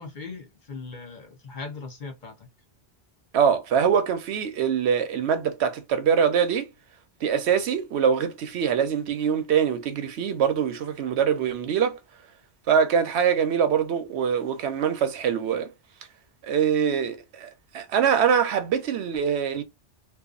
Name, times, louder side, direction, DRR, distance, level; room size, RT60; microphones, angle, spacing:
voice 1, 0.0-2.5, left 4 dB, 50° left, 0.8 m, -39 dB
voice 2, 3.3-6.7 7.2-12.0 12.7-15.7 16.4-19.6, right 7 dB, 75° right, 0.9 m, -23 dB
2.7 x 2.3 x 2.3 m
omnidirectional pair, 1.1 m